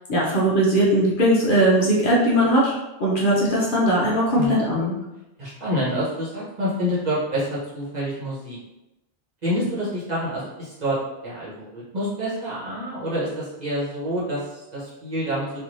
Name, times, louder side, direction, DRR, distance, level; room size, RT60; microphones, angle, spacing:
voice 1, 0.1-4.9, right 1 dB, 55° left, -5 dB, 0.8 m, -19 dB
voice 2, 5.4-8.6 9.4-11.0 11.2-15.6, equal, 40° right, -8 dB, 1.1 m, -27 dB
3.2 x 2.6 x 2.6 m, 0.95 s
omnidirectional pair, 1.1 m